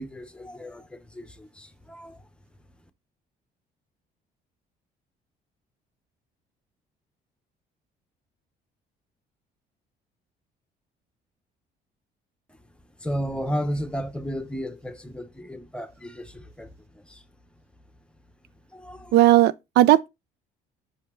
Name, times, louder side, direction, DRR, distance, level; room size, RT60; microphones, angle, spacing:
voice 1, 0.0-2.2 13.0-16.7 17.1-17.2 18.7-19.1, equal, 5° left, 0.9 m, -33 dB
voice 2, 19.1-20.1, right 14 dB, 75° right, 0.4 m, -17 dB
5.8 x 5.3 x 3.7 m
cardioid pair, 110°, 17 cm